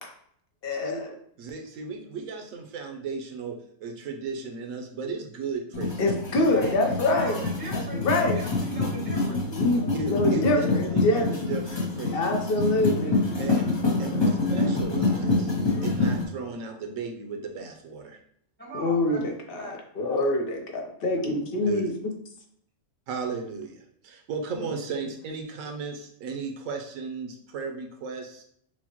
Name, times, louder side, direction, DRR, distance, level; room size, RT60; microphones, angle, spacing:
voice 1, 0.6-1.1 6.0-7.4 7.7-8.4 9.5-11.3 12.1-13.2 18.7-21.9, left 2 dB, 55° left, 2 dB, 0.8 m, -25 dB
voice 2, 1.4-6.0 6.9-7.4 9.9-12.2 13.4-15.5 15.8-18.2 21.6-21.8 23.1-28.4, right 4 dB, 90° right, 3 dB, 1.1 m, -35 dB
sound 1, 5.7-16.2, left 3 dB, 30° left, 0.5 m, -26 dB
voice 3, 6.1-9.4 18.6-19.2 19.6-19.7, right 1 dB, 10° left, -5 dB, 1.0 m, -40 dB
6.0 x 2.1 x 2.9 m, 0.68 s
omnidirectional pair, 1.3 m